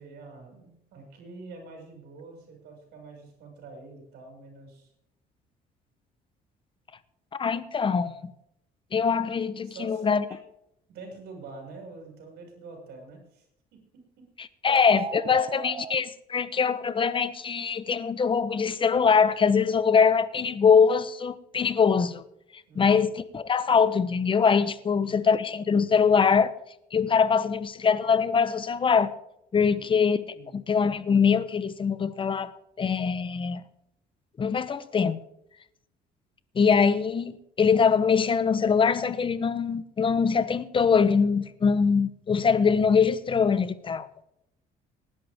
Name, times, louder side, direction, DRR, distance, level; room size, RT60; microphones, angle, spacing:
voice 1, 0.0-4.9 9.6-10.4 10.9-13.4 13.9-14.3 22.7-23.0 24.8-25.2 29.6-29.9 30.3-30.5, right 3 dB, 75° right, 6.0 m, -46 dB
voice 2, 7.3-8.3 8.9-10.2 14.4-22.2 22.8-26.5 26.9-29.1 29.5-30.2 30.5-32.5 32.8-33.6 34.4-35.2 36.5-44.1, left 6 dB, 30° left, 0.9 m, -23 dB
sound 1, 14.8-16.0, right 8 dB, 35° right, 0.4 m, -36 dB
19.0 x 11.0 x 3.6 m
cardioid pair, 110°, 17 cm